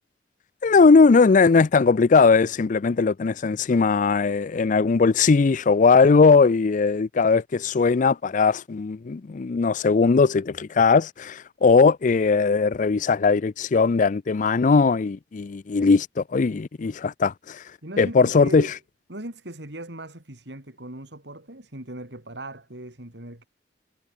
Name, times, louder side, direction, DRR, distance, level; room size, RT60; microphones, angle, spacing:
voice 1, 0.6-17.6 18.0-18.7, left 4 dB, 45° left, 0.4 m, -19 dB
voice 2, 17.8-18.8 19.1-23.5, right 1 dB, 70° right, 3.9 m, -38 dB
head